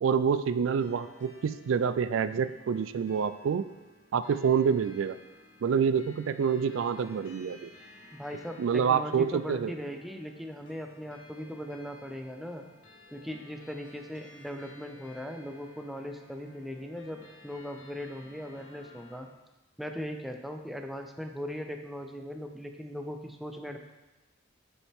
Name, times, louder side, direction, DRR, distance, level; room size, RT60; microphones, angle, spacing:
voice 1, 0.0-3.6 4.1-5.2 5.6-7.7 8.6-9.7, right 7 dB, 85° right, 13 dB, 0.3 m, -27 dB
sound 1, 0.8-19.2, left 2 dB, 75° left, 1.6 m, -55 dB
voice 2, 8.1-12.6 13.1-19.3 19.8-23.8, equal, ahead, 4 dB, 0.5 m, -39 dB
7.2 x 7.1 x 3.5 m, 1.0 s
head